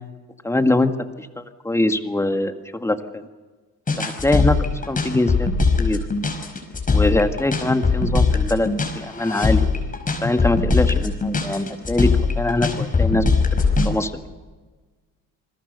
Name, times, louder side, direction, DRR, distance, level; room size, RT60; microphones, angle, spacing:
voice 1, 0.4-0.9 1.2-3.3 4.0-4.6 4.9-5.5 5.8-6.0 6.9-9.7 10.2-13.3 13.5-14.1, left 2 dB, 10° left, 8 dB, 1.9 m, -22 dB
sound 1, 3.9-13.9, left 4 dB, 25° left, 5.3 m, -20 dB
28.5 x 21.5 x 6.8 m, 1.3 s
cardioid pair, 110°, 32 cm